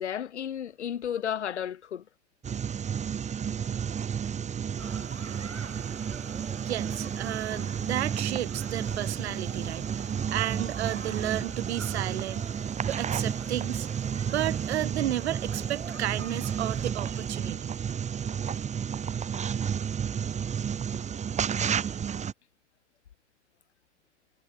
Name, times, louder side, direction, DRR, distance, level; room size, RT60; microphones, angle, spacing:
voice 1, 0.0-2.0, left 9 dB, 70° left, 1.9 m, -33 dB
sound 1, 2.4-22.3, right 7 dB, 20° right, 1.2 m, -32 dB
sound 2, 4.8-16.9, right 4 dB, 80° right, 5.9 m, -46 dB
voice 2, 6.7-13.9 14.3-17.7, right 13 dB, 65° right, 3.5 m, -33 dB
figure-of-eight pair, 80°, 35 cm